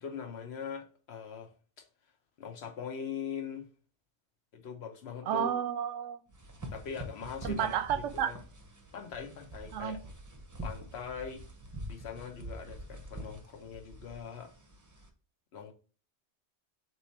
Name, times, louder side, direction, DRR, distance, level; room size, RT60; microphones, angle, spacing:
voice 1, 0.0-1.8 2.4-3.6 4.5-5.5 6.7-8.4 8.9-10.0 10.6-11.4 11.9-14.5 15.5-15.7, left 6 dB, 65° left, 1.0 m, -41 dB
voice 2, 5.3-6.2 7.4-8.3 9.7-10.0, right 9 dB, 90° right, 0.9 m, -31 dB
sound 1, 6.3-15.1, right 1 dB, 20° right, 0.6 m, -46 dB
4.0 x 3.1 x 4.2 m
omnidirectional pair, 1.2 m